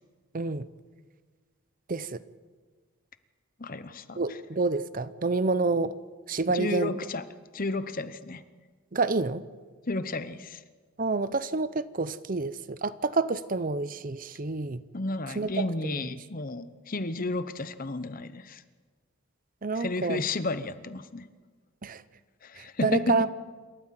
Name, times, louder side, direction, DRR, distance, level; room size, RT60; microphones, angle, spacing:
voice 1, 0.3-0.7 1.9-2.2 4.2-6.0 6.3-7.0 8.9-9.4 11.0-14.8 15.3-16.1 19.6-20.2 21.8-22.0 22.6-23.3, right 3 dB, 40° right, 15 dB, 0.6 m, -28 dB
voice 2, 3.6-4.2 6.5-7.3 7.5-8.4 9.9-10.6 14.9-18.6 19.7-21.2 22.4-23.2, left 2 dB, 40° left, 13 dB, 0.9 m, -32 dB
27.5 x 13.5 x 7.6 m, 1.4 s
head